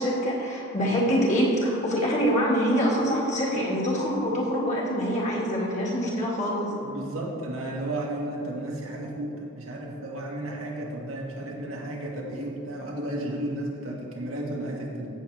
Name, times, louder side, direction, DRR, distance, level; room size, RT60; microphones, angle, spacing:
voice 1, 0.0-6.7, equal, 35° left, -4 dB, 2.0 m, -25 dB
voice 2, 6.8-15.1, right 1 dB, 90° right, -2 dB, 1.8 m, -33 dB
15.5 x 7.1 x 3.4 m, 2.7 s
head